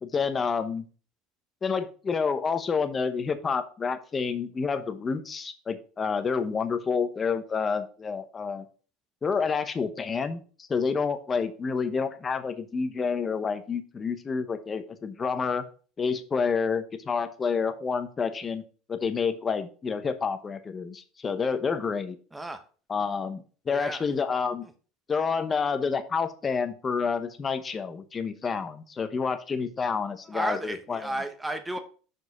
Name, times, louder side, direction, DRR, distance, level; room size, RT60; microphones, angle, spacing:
voice 1, 0.0-0.8 1.6-8.7 9.2-15.7 16.0-18.6 18.9-22.2 22.9-24.7 25.1-31.0, left 5 dB, 20° left, 9 dB, 0.8 m, -29 dB
voice 2, 22.3-22.6 23.7-24.1 24.6-24.7 30.2-31.8, right 1 dB, 5° right, 8 dB, 0.9 m, -33 dB
6.2 x 4.9 x 4.9 m, 0.38 s
cardioid pair, 150°, 0 cm